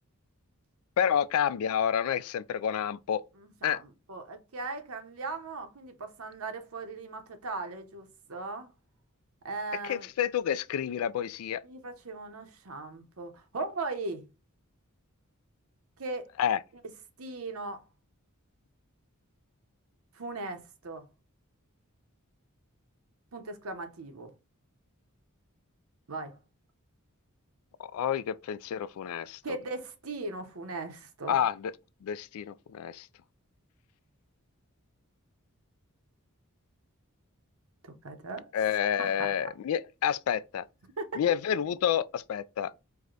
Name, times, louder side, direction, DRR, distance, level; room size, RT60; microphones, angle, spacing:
voice 1, 1.0-3.2 3.6-3.8 9.8-11.6 16.4-16.6 27.8-29.4 31.3-31.7 32.0-33.1 38.5-40.6 41.2-42.7, left 9 dB, 75° left, 0.3 m, -29 dB
voice 2, 3.3-8.7 9.4-10.1 11.6-14.2 16.0-16.3 17.2-17.8 20.1-21.0 23.3-24.3 26.1-26.4 29.4-31.4 37.8-38.5 39.0-39.3 41.0-41.2, right 3 dB, 70° right, 0.8 m, -38 dB
4.7 x 2.2 x 3.8 m
head